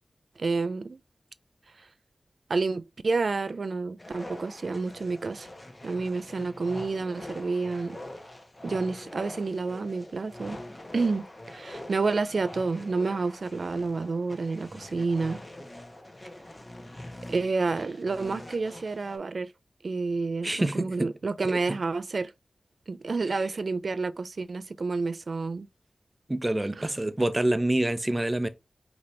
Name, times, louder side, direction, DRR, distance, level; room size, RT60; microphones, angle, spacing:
voice 1, 0.4-1.0 2.5-5.5 5.8-8.0 8.6-10.6 10.9-15.4 17.3-19.5 19.8-22.3 22.9-25.7 26.8-26.9, right 3 dB, 70° right, 0.3 m, -29 dB
sound 1, 4.0-19.2, left 1 dB, 30° left, 1.1 m, -44 dB
voice 2, 20.4-21.1 21.5-21.6 26.3-28.5, right 1 dB, 25° right, 0.6 m, -26 dB
5.1 x 2.9 x 3.1 m
cardioid pair, 50°, 0 cm